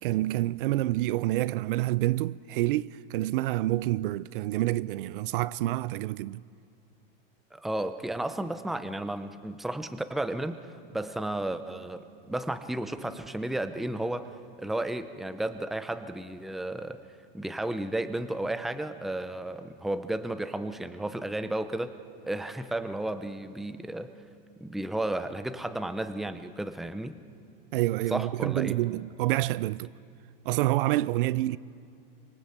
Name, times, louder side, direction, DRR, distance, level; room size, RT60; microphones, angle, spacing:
voice 1, 0.0-6.4 27.7-29.9 30.4-31.6, right 16 dB, 65° right, 0.6 m, -28 dB
voice 2, 7.5-14.3 14.6-17.0 17.3-21.9 22.2-24.1 24.6-27.2 28.1-28.8, right 1 dB, ahead, 0.6 m, -33 dB
25.5 x 25.0 x 8.0 m
supercardioid pair, 155°, 29 cm